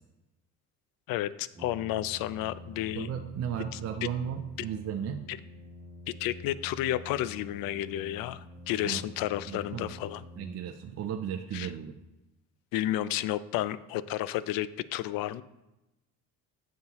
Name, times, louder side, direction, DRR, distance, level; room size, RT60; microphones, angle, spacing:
voice 1, 1.1-3.1 3.7-3.8 5.3-5.4 6.2-10.2 11.5-11.7 12.7-15.4, left 13 dB, 75° left, 16 dB, 0.5 m, -32 dB
Brass instrument, 1.5-11.0, left 1 dB, 20° right, 2.0 m, -47 dB
voice 2, 2.9-5.2 8.8-9.0 9.5-9.9 10.4-12.0, right 9 dB, 45° right, 5 dB, 0.5 m, -35 dB
9.3 x 7.3 x 3.0 m, 0.98 s
cardioid pair, 145°, 35 cm